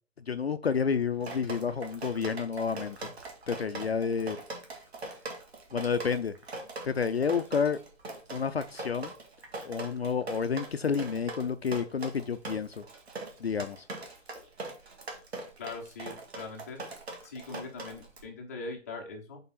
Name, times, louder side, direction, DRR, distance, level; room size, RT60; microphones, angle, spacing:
voice 1, 0.3-3.1 3.5-4.4 5.7-6.3 6.8-7.8 8.3-9.1 9.6-12.8 13.4-13.9, left 6 dB, 50° left, 11 dB, 0.5 m, -30 dB
Drip, 1.2-18.2, right 2 dB, 50° right, 1.8 m, -41 dB
voice 2, 15.6-16.8 17.2-19.4, left 3 dB, 10° left, 0 dB, 0.6 m, -41 dB
7.6 x 3.6 x 4.1 m, 0.35 s
figure-of-eight pair, 135°, 40 cm